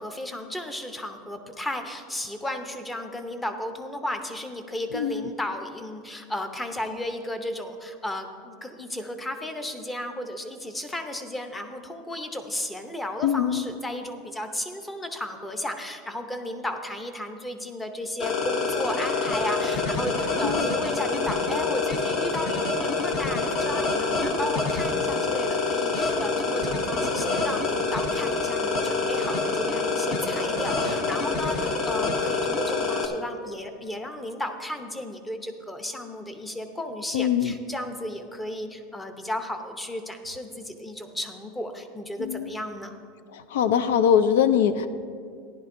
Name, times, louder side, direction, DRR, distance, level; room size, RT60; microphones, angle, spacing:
voice 1, 0.0-43.0, left 1 dB, 10° left, 7 dB, 0.7 m, -34 dB
voice 2, 4.9-5.3 13.2-13.7 20.4-20.7 37.1-37.5 42.2-42.5 43.3-44.9, left 8 dB, 80° left, 12 dB, 0.4 m, -22 dB
sound 1, 18.2-33.0, left 3 dB, 45° left, 1.0 m, -26 dB
15.0 x 11.0 x 2.6 m, 2.3 s
supercardioid pair, 155°, 0 cm